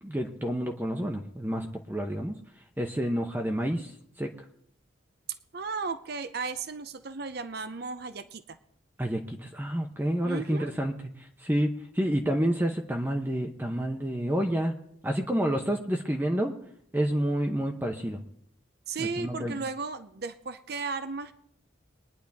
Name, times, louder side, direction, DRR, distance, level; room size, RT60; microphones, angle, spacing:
voice 1, 0.0-2.3 2.8-3.9 4.2-4.3 9.0-10.9 11.2-14.7 15.0-16.5 16.9-18.2 19.0-19.6, equal, 10° right, 3 dB, 0.8 m, -29 dB
voice 2, 5.5-8.6 10.2-10.7 18.9-21.3, right 4 dB, 55° right, 11 dB, 0.7 m, -35 dB
22.5 x 10.0 x 3.5 m, 0.71 s
head